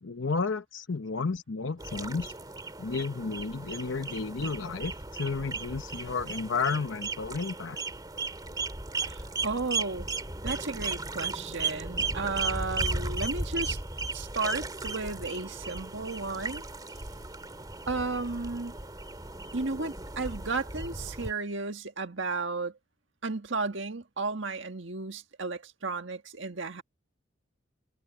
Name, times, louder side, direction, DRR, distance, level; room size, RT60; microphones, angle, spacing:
voice 1, 0.0-2.3 2.8-7.8, left 4 dB, 70° left, 0.8 m, -32 dB
sound 1, 1.8-21.3, right 3 dB, 20° right, 2.8 m, -36 dB
voice 2, 9.0-10.1 10.4-13.8 14.1-16.6 17.9-18.7 19.5-22.7 23.2-26.8, right 3 dB, 70° right, 1.7 m, -33 dB
head